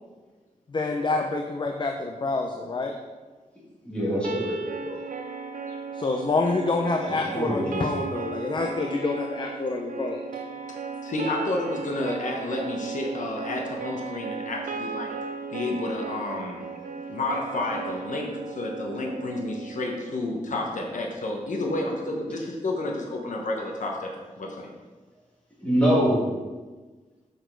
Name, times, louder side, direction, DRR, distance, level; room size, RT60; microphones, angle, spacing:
voice 1, 0.7-3.0 5.9-10.2, left 3 dB, 35° left, 2 dB, 0.6 m, -27 dB
voice 2, 3.8-5.0 7.1-8.0 25.6-26.2, equal, 10° left, -7 dB, 2.8 m, -25 dB
sound 1, 4.2-20.3, right 5 dB, 85° right, 0.6 m, -36 dB
voice 3, 11.0-15.1 15.5-16.7 17.1-24.1 24.4-24.7, left 2 dB, 70° left, 0 dB, 1.2 m, -30 dB
6.8 x 6.5 x 4.6 m, 1.3 s
wide cardioid pair, 165°, 14 cm